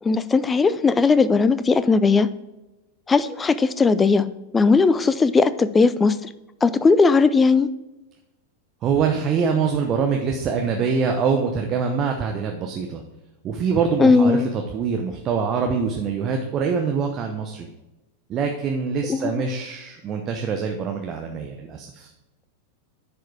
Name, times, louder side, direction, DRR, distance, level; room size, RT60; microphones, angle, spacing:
voice 1, 0.0-2.3 3.1-4.3 4.5-6.3 6.6-7.7 14.0-14.5 19.1-19.3, left 4 dB, 15° left, 14 dB, 0.4 m, -18 dB
voice 2, 8.8-13.0 13.4-17.7 18.3-22.1, right 5 dB, 30° right, 3 dB, 0.8 m, -24 dB
10.5 x 4.8 x 4.6 m, 1.0 s
figure-of-eight pair, 90°, 0 cm